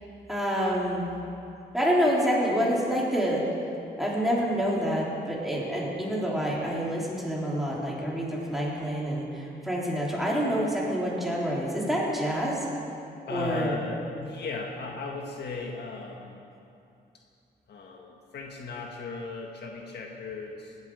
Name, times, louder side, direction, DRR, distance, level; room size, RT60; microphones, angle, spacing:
voice 1, 0.3-1.1 1.7-3.5 4.0-12.7 13.3-13.8, equal, ahead, -5 dB, 3.9 m, -27 dB
voice 2, 13.3-16.4 17.7-20.8, left 3 dB, 70° left, 1 dB, 1.7 m, -37 dB
18.0 x 12.5 x 4.9 m, 2.6 s
cardioid pair, 95°, 18 cm